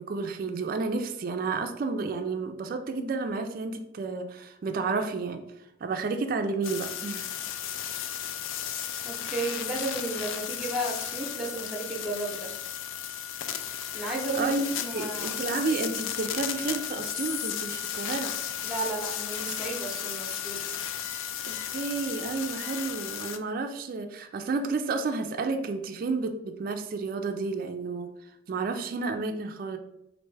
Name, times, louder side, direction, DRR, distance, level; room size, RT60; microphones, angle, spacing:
voice 1, 0.0-5.4 5.8-7.3 14.3-18.3 21.5-28.1 28.5-29.8, right 4 dB, 45° right, 6 dB, 0.3 m, -31 dB
sound 1, 6.6-23.4, left 10 dB, 75° left, 0.3 m, -34 dB
voice 2, 9.0-12.5 13.9-14.5 14.8-15.4 18.6-20.6, right 2 dB, 5° right, -1 dB, 0.7 m, -33 dB
4.4 x 2.5 x 3.2 m, 0.85 s
head